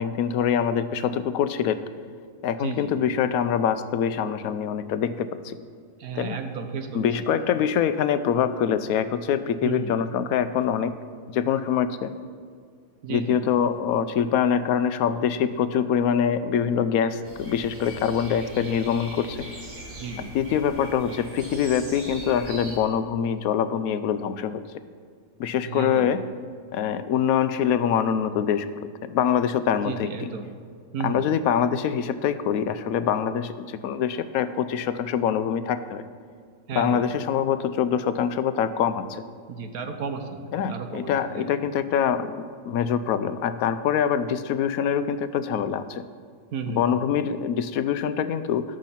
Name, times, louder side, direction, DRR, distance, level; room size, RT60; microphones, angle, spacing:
voice 1, 0.0-1.8 2.4-5.6 6.1-6.4 6.9-10.9 11.3-12.1 13.1-19.5 20.3-24.6 25.4-26.2 26.7-28.7 29.1-30.3 31.0-36.0 36.7-39.2 40.5-42.3 42.7-46.0 46.7-48.6, left 8 dB, 75° left, 12 dB, 1.0 m, -24 dB
voice 2, 2.6-2.9 6.0-7.3 9.6-9.9 13.0-13.4 20.0-20.3 25.7-26.1 29.8-30.4 30.9-31.3 36.7-37.0 39.5-40.4 40.7-41.5 46.5-47.0, right 5 dB, 90° right, 6 dB, 1.4 m, -33 dB
sound 1, 17.2-22.8, right 1 dB, 70° right, 2.7 m, -41 dB
13.0 x 6.4 x 5.7 m, 2.1 s
omnidirectional pair, 1.5 m